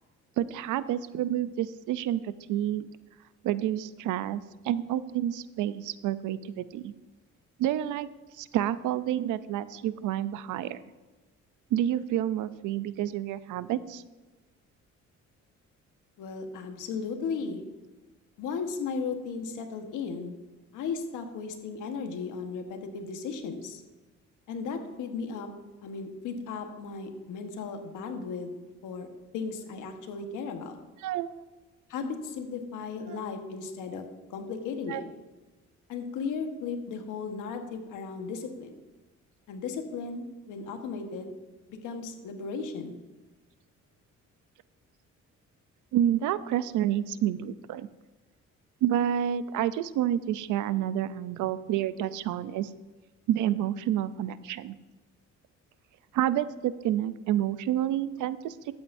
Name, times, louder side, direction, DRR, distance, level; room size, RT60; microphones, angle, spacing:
voice 1, 0.4-2.9 3.4-6.9 7.6-8.1 8.3-10.8 11.7-14.0 31.0-31.4 33.1-33.2 34.9-35.0 45.9-47.9 48.8-52.7 53.3-54.7 56.1-58.6, right 11 dB, 85° right, 15 dB, 0.5 m, -29 dB
voice 2, 16.2-17.6 18.4-20.3 20.7-23.8 24.5-25.5 25.8-29.1 29.3-30.8 31.9-34.0 34.3-35.0 35.9-38.7 39.5-41.3 41.7-42.9, left 5 dB, 85° left, 5 dB, 1.3 m, -36 dB
13.0 x 8.7 x 2.6 m, 1.2 s
cardioid pair, 90°, 30 cm